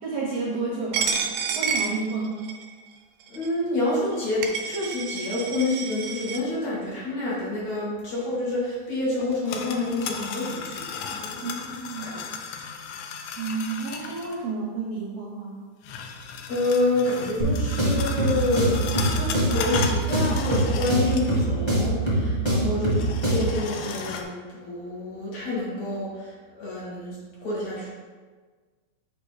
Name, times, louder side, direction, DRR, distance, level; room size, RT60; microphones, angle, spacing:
voice 1, 0.0-1.2 1.5-2.5 11.4-12.2 13.4-15.6 22.6-22.9, right 4 dB, 70° right, -4 dB, 1.6 m, -31 dB
Coin (dropping), 0.9-2.7 3.3-3.5 4.1-4.2 4.4-6.4, right 6 dB, 85° right, 2.3 m, -29 dB
voice 2, 3.3-11.6 12.0-12.5 16.5-27.9, left 2 dB, 55° left, -7 dB, 2.7 m, -28 dB
sound 1, 9.2-14.4 15.8-21.5 21.8-21.9 22.8-24.2, left 6 dB, 80° left, 1.9 m, -35 dB
sound 2, 17.4-23.6, right 1 dB, 15° left, 1.0 m, -24 dB
8.6 x 3.0 x 4.7 m, 1.5 s
omnidirectional pair, 3.9 m